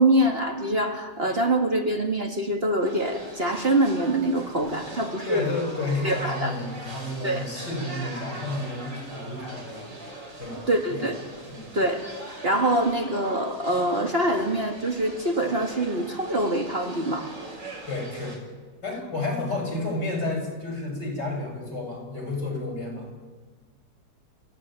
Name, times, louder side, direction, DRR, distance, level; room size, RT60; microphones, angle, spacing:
voice 1, 0.0-5.5 6.0-6.5 7.2-7.4 10.7-11.2 11.7-12.0 12.4-17.3, right 1 dB, 35° right, 3 dB, 2.0 m, -24 dB
sound 1, 2.8-18.4, right 2 dB, 90° right, 6.0 m, -42 dB
voice 2, 5.2-9.9 10.4-11.1 11.5-11.7 17.9-18.4 18.8-23.2, left 2 dB, 70° left, 1 dB, 7.8 m, -31 dB
29.0 x 16.0 x 8.9 m, 1.4 s
omnidirectional pair, 1.9 m